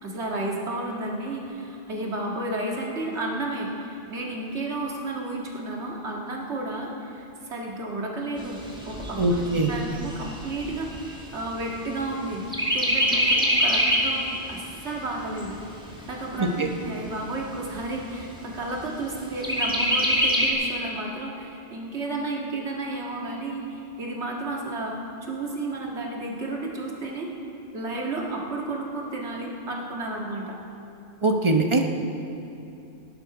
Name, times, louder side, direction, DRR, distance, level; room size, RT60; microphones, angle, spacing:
voice 1, 0.0-8.6 8.9-15.6 16.1-24.9 25.2-27.3 27.7-30.6, right 2 dB, 80° right, -1 dB, 2.1 m, -32 dB
Chirp tweet, 8.4-12.1 12.5-14.2 14.6-14.7 15.1-16.1 16.7-16.8 17.1-17.2 17.7-18.2 19.4-20.5, equal, 5° right, 1.9 m, -24 dB
voice 2, 9.2-9.7 16.4-16.7 31.2-31.8, right 2 dB, 30° right, 3 dB, 1.0 m, -22 dB
18.0 x 11.0 x 4.8 m, 2.8 s
omnidirectional pair, 1.1 m